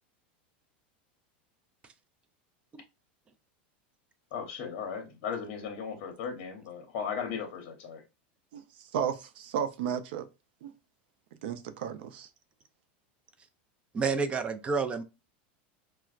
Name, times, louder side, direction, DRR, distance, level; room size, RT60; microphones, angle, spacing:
voice 1, 4.3-8.0, left 6 dB, 55° left, 0.8 m, -36 dB
voice 2, 8.9-10.2 10.6-10.7 11.4-12.3, right 8 dB, 75° right, 0.5 m, -33 dB
voice 3, 13.9-15.0, right 5 dB, 20° right, 0.4 m, -29 dB
4.4 x 2.1 x 2.4 m
supercardioid pair, 145°, 6 cm